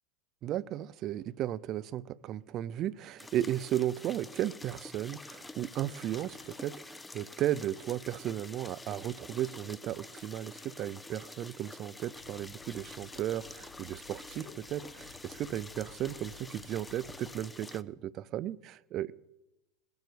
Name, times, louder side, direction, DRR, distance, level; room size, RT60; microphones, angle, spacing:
voice 1, 0.4-19.1, right 12 dB, 40° right, 0.5 m, -35 dB
sound 1, 3.2-17.8, left 2 dB, 10° left, 0.5 m, -48 dB
sound 2, 5.4-6.8 7.6-8.6 9.0-10.8, left 5 dB, 75° left, 3.9 m, -63 dB
sound 3, 12.1-17.4, left 8 dB, 45° left, 1.0 m, -55 dB
20.0 x 7.0 x 8.0 m
supercardioid pair, 130°, 0 cm